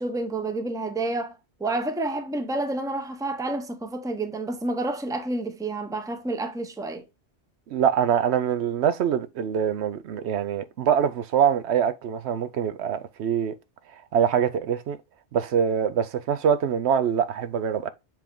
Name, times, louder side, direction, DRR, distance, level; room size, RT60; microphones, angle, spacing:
voice 1, 0.0-7.0, right 2 dB, 5° right, 0.6 m, -29 dB
voice 2, 7.7-13.5 14.1-15.0 15.3-17.9, right 8 dB, 75° right, 0.9 m, -24 dB
7.4 x 3.5 x 3.7 m
omnidirectional pair, 1.2 m